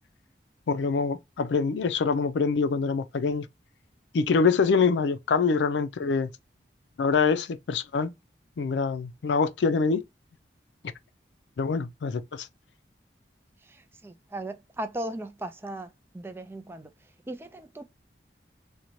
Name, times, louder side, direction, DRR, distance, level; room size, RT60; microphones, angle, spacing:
voice 1, 0.7-3.5 4.1-6.3 7.0-8.1 8.6-10.0 11.6-12.5, left 5 dB, 85° left, 0.4 m, -25 dB
voice 2, 13.6-16.9 17.3-17.8, right 1 dB, 15° right, 0.3 m, -37 dB
3.9 x 2.1 x 2.9 m
head